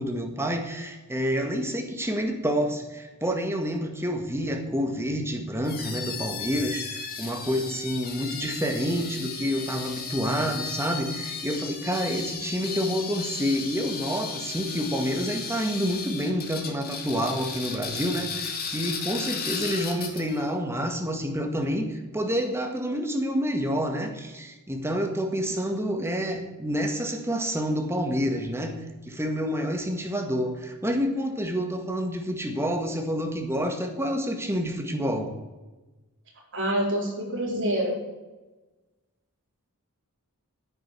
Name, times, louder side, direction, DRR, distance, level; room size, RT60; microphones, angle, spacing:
voice 1, 0.0-35.3, equal, 10° right, 4 dB, 1.8 m, -28 dB
sound 1, 5.6-20.5, left 5 dB, 45° left, 2.2 m, -35 dB
voice 2, 25.5-25.9 36.5-38.0, equal, 55° right, -2 dB, 4.7 m, -27 dB
10.0 x 8.8 x 8.4 m, 1.1 s
head